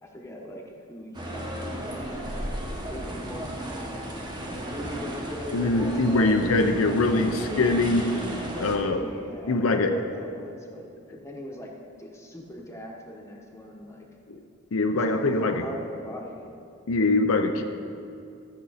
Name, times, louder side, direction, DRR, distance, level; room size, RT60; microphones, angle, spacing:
voice 1, 0.0-2.1 2.9-3.7 4.7-6.8 7.2-7.9 8.4-11.7 12.0-14.1 14.9-16.4, left 1 dB, 15° left, -1 dB, 1.1 m, -40 dB
sound 1, 1.1-8.8, right 1 dB, 20° right, 1.4 m, -34 dB
voice 2, 5.5-8.0 8.6-9.0 9.5-9.9 14.3-14.4 14.7-15.6 16.9-17.6, left 2 dB, 80° left, 5 dB, 0.7 m, -23 dB
13.5 x 7.0 x 4.2 m, 2.5 s
head